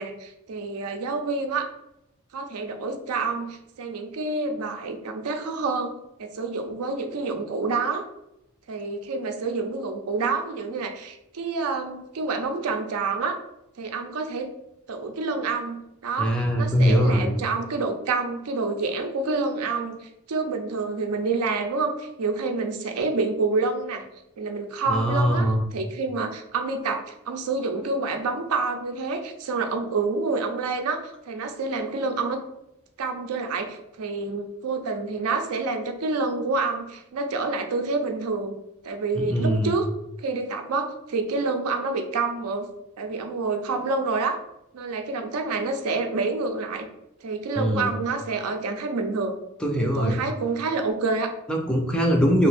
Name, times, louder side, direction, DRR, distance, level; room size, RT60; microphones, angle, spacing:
voice 1, 0.0-1.7 2.3-5.9 6.2-8.1 8.7-13.4 13.8-14.5 14.9-24.0 24.4-32.4 33.0-38.5 38.8-39.9 40.2-42.7 43.0-44.4 44.7-46.9 47.2-49.3 49.8-51.3, right 3 dB, 85° right, 5 dB, 0.5 m, -28 dB
voice 2, 16.2-17.3 24.9-25.6 39.2-39.7 47.6-47.9 49.6-50.2 51.5-52.5, equal, 5° left, 1 dB, 0.3 m, -22 dB
2.8 x 2.5 x 3.4 m, 0.85 s
head